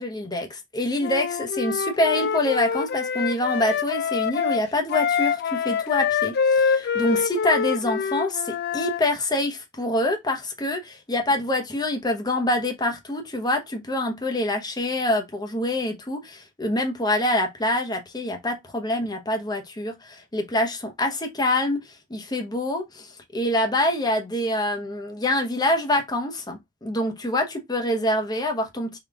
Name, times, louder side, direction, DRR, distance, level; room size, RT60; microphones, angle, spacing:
voice 1, 0.0-29.0, left 1 dB, 20° left, 0.8 m, -26 dB
Wind instrument woodwind instrument, 1.0-9.0, left 6 dB, 55° left, 0.4 m, -25 dB
3.8 x 2.3 x 3.3 m
head